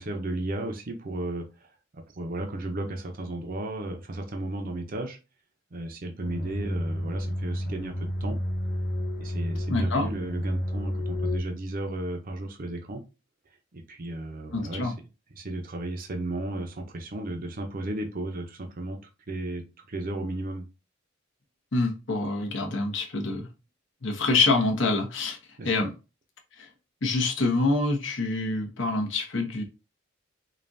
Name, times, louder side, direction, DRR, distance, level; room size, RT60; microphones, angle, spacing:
voice 1, 0.0-5.2 5.7-8.4 9.2-13.0 13.7-14.9 15.3-19.6 19.9-20.7 25.6-25.9, right 1 dB, 45° right, 4 dB, 0.7 m, -34 dB
sound 1, 6.2-11.4, left 1 dB, 40° left, 1.0 m, -31 dB
voice 2, 9.7-10.1 14.5-14.9 21.7-23.5 24.0-25.4 25.6-25.9 26.6-26.7 27.0-29.6, left 3 dB, 70° left, 2 dB, 1.0 m, -26 dB
5.2 x 2.4 x 2.7 m, 0.29 s
head